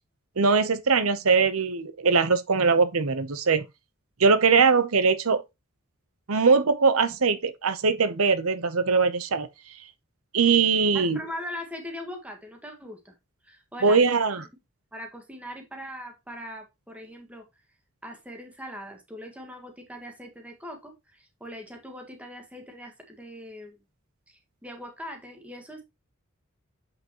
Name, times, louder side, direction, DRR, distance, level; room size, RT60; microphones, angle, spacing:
voice 1, 0.4-3.6 4.2-5.4 6.3-9.5 10.3-11.2 13.8-14.4, right 5 dB, 80° right, 0.8 m, -21 dB
voice 2, 10.9-13.1 13.4-14.2 14.9-17.4 18.0-23.8 24.3-25.8, left 1 dB, 5° right, 1.8 m, -41 dB
8.0 x 5.8 x 3.0 m
head